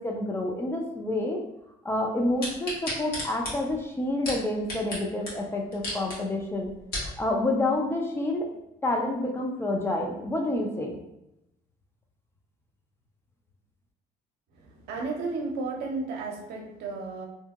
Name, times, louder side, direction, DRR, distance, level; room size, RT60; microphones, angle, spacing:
voice 1, 0.0-1.4 1.8-6.7 7.2-8.5 8.8-11.0, left 1 dB, 15° left, 0 dB, 0.4 m, -28 dB
sound 1, 2.4-5.0 5.3-5.4 5.7-6.2 6.6-7.1 7.7-7.8, left 1 dB, 65° left, 1.3 m, -33 dB
voice 2, 14.5-17.3, right 3 dB, 75° right, 0 dB, 0.7 m, -33 dB
2.7 x 2.7 x 2.3 m, 0.87 s
cardioid pair, 110°, 17 cm